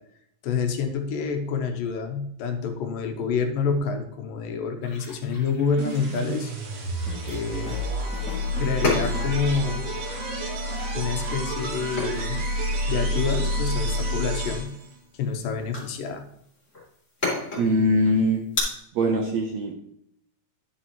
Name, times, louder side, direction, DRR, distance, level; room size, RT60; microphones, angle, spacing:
voice 1, 0.4-6.5 7.2-7.8 8.6-9.8 10.9-12.4 12.9-14.8 15.2-16.3, left 5 dB, 80° left, 6 dB, 2.5 m, -28 dB
sound 1, 4.8-18.6, left 2 dB, 20° left, 3.2 m, -35 dB
sound 2, 5.8-14.9, equal, 60° right, 2.5 m, -29 dB
sound 3, 7.1-7.9 8.1-9.9, left 3 dB, 5° left, 1.1 m, -40 dB
voice 2, 17.6-18.4 18.9-19.7, equal, 75° right, 2 dB, 1.6 m, -22 dB
11.0 x 7.0 x 3.0 m, 0.71 s
omnidirectional pair, 4.1 m